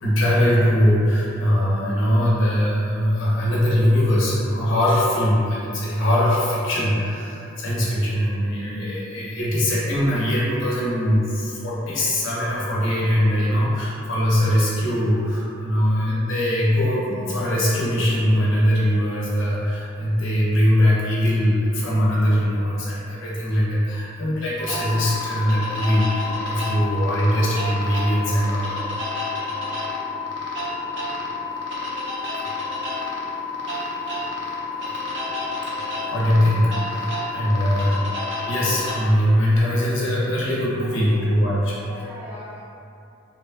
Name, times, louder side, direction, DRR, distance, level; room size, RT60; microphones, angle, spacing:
voice 1, 0.0-29.3 30.7-30.8 33.7-33.8 35.0-35.1 35.9-38.0 38.4-41.7, equal, 65° left, -7 dB, 0.6 m, -21 dB
sound 1, 24.6-39.0, left 3 dB, 60° right, 0.5 m, -29 dB
voice 2, 40.8-42.6, left 1 dB, 5° right, -11 dB, 0.6 m, -42 dB
2.9 x 2.2 x 2.4 m, 2.7 s
head